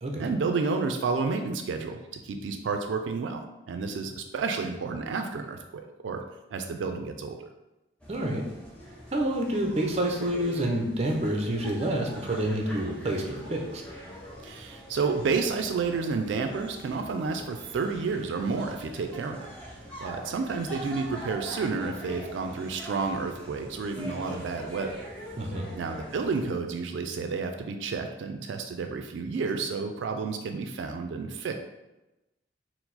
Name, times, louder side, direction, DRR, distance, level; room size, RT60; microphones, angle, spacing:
voice 1, 0.2-6.2 6.5-7.5 14.4-19.5 20.0-25.0 25.7-31.5, right 4 dB, 85° right, 5 dB, 0.3 m, -30 dB
sound 1, 8.0-26.5, equal, 5° left, 0.8 m, -43 dB
voice 2, 8.1-8.4 9.1-13.8 25.4-25.7, right 1 dB, 35° right, 1 dB, 0.6 m, -28 dB
4.6 x 2.0 x 3.9 m, 1.0 s
head